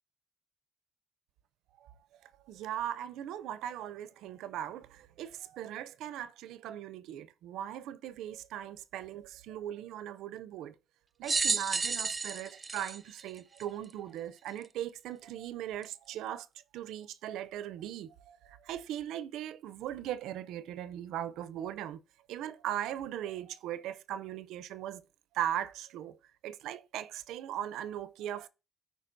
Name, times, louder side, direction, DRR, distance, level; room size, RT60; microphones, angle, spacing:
voice 1, 2.2-10.7 11.2-16.5 16.7-22.0 22.3-25.0 25.3-26.2 26.4-28.5, right 11 dB, 90° right, 0.4 m, -39 dB
sound 1, 11.2-13.9 14.6-14.7 15.8-15.9, right 4 dB, 30° right, 0.4 m, -32 dB
13.5 x 4.6 x 2.5 m
cardioid pair, 90°, 0 cm